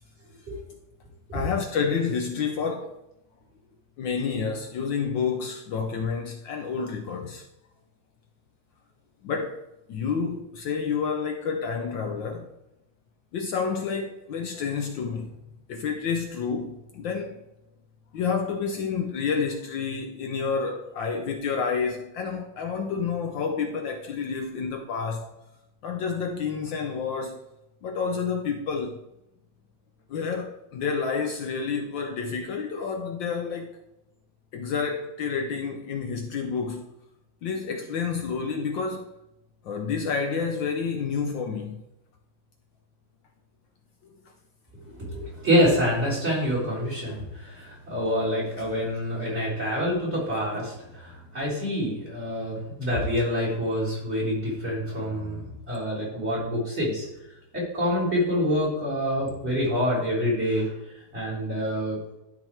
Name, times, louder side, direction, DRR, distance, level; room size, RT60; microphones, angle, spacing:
voice 1, 1.3-3.0 4.0-7.4 9.2-9.6 9.9-12.5 13.3-15.4 15.7-17.4 18.1-25.3 25.8-27.4 27.8-29.0 30.1-33.8 34.5-36.8 37.4-39.1 39.6-41.8 44.9-45.0 47.1-47.2 48.5-48.7 50.5-50.7, left 5 dB, 70° left, 1.3 m, -29 dB
voice 2, 44.9-57.1 57.5-60.7 61.1-62.0, equal, 30° right, 3.9 m, -26 dB
12.0 x 4.1 x 4.4 m
omnidirectional pair, 2.3 m